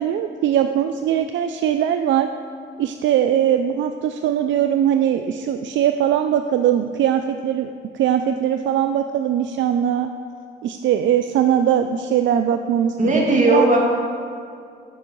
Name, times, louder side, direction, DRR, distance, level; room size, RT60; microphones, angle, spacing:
voice 1, 0.0-2.3 2.8-10.1 10.6-13.7, right 10 dB, 70° right, 7 dB, 0.4 m, -20 dB
voice 2, 13.0-13.8, right 1 dB, 40° right, -2 dB, 2.0 m, -17 dB
9.2 x 5.4 x 6.0 m, 2.3 s
cardioid pair, 90°, 20 cm